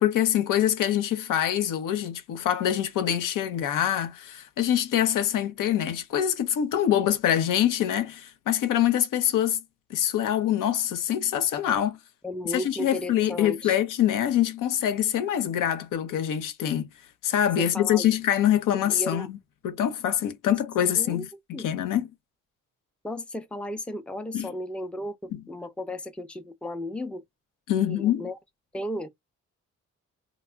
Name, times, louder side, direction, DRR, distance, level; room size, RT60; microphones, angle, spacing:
voice 1, 0.0-9.6 9.9-12.0 12.5-16.9 17.2-19.4 19.6-22.1 24.3-24.5 27.7-28.3, left 10 dB, 80° left, 0.6 m, -25 dB
voice 2, 12.2-13.8 17.6-18.1 18.7-19.3 21.0-21.3 21.5-21.7 23.0-27.2 27.7-28.4 28.7-29.1, left 1 dB, 5° left, 0.5 m, -34 dB
2.3 x 2.0 x 3.2 m
cardioid pair, 75°, 32 cm